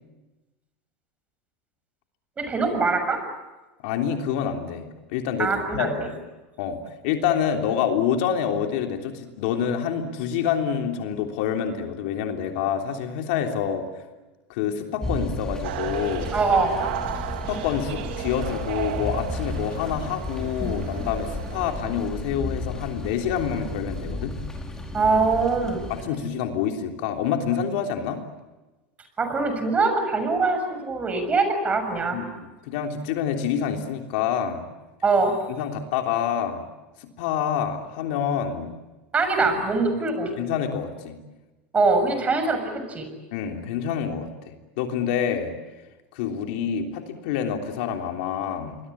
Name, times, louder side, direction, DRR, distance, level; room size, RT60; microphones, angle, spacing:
voice 1, 2.4-3.2 5.4-5.9 16.3-16.7 24.9-25.8 29.2-32.2 35.0-35.4 39.1-40.3 41.7-43.1, right 3 dB, 25° right, 7 dB, 6.6 m, -23 dB
voice 2, 3.8-4.8 5.1-6.1 6.6-6.8 7.0-13.8 14.5-16.3 17.5-24.3 25.9-28.2 32.1-32.2 32.7-34.7 35.5-36.6 37.2-38.7 39.4-39.5 40.4-41.1 43.3-45.5 46.1-48.8, left 8 dB, 70° left, 4 dB, 3.3 m, -27 dB
sound 1, 15.0-26.0, left 1 dB, 10° left, 4.6 m, -33 dB
sound 2, 15.6-21.7, right 11 dB, 75° right, 2.5 m, -34 dB
27.5 x 22.0 x 8.6 m, 1.1 s
supercardioid pair, 110°, 6 cm